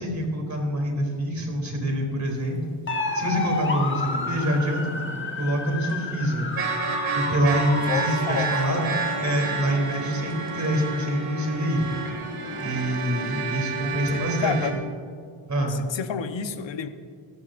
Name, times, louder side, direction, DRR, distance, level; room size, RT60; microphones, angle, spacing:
voice 1, 0.0-2.6 3.1-5.1 5.4-6.5 7.1-8.9 9.2-11.9 12.6-14.6 15.5-15.7, equal, 35° right, 1 dB, 3.3 m, -26 dB
sound 1, 2.9-13.6, left 3 dB, 25° left, 1.4 m, -33 dB
sound 2, 2.9-3.0 3.3-3.6 4.1-4.2 5.9-6.0 6.6-14.7, right 4 dB, 80° right, 2.3 m, -30 dB
voice 2, 3.7-4.0 7.8-8.6 14.1-14.8 15.7-16.9, left 7 dB, 65° left, 9 dB, 1.1 m, -30 dB
21.5 x 12.0 x 2.6 m, 2.1 s
cardioid pair, 70°, 48 cm